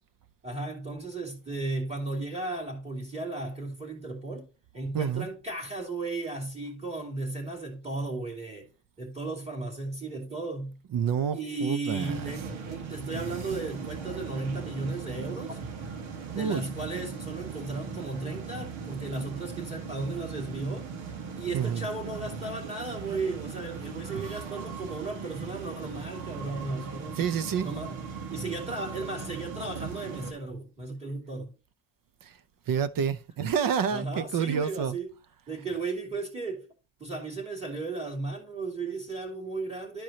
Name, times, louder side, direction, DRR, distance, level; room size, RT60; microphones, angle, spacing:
voice 1, 0.4-4.5 4.7-8.7 9.0-10.8 11.3-15.6 16.3-20.9 21.3-27.3 27.6-28.0 28.3-31.5 33.9-35.1 35.5-36.7 37.0-40.0, right 3 dB, 15° right, 2.8 m, -35 dB
voice 2, 4.9-5.3 10.9-12.3 16.3-16.7 21.5-21.9 27.2-27.8 32.2-32.3 32.7-34.9, right 7 dB, 45° right, 0.8 m, -28 dB
sound 1, 12.0-30.3, right 5 dB, 85° right, 1.9 m, -39 dB
12.0 x 4.7 x 2.9 m
cardioid pair, 115°, 46 cm